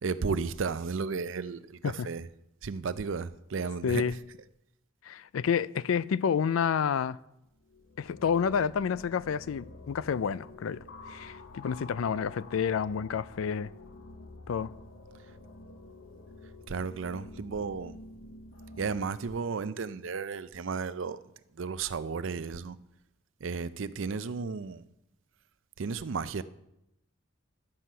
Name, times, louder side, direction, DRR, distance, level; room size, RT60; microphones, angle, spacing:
voice 1, 0.0-2.2 2.6-4.1 16.7-18.0 18.8-21.2 21.6-22.8 23.4-24.8 25.8-26.4, right 5 dB, 70° right, 0.5 m, -33 dB
voice 2, 3.8-4.1 5.1-7.2 8.0-13.7 14.5-14.7, left 7 dB, 85° left, 0.4 m, -29 dB
sound 1, 7.5-19.0, left 2 dB, 60° left, 0.8 m, -49 dB
12.0 x 7.7 x 5.5 m
head